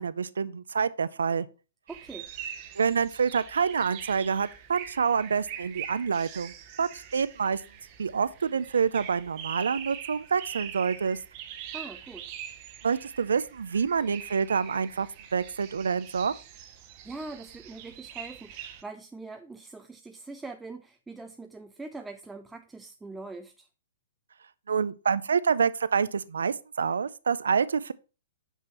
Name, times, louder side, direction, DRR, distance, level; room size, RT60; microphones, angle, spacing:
voice 1, 0.0-1.5 2.8-7.6 8.0-11.2 12.8-16.3 24.7-27.9, right 6 dB, 85° right, 0.4 m, -27 dB
voice 2, 1.9-2.3 11.7-12.4 17.0-23.7, right 3 dB, 5° right, 0.4 m, -42 dB
sound 1, 1.9-18.8, right 9 dB, 40° right, 0.8 m, -43 dB
5.9 x 5.4 x 4.4 m
hypercardioid pair, 135°, 0 cm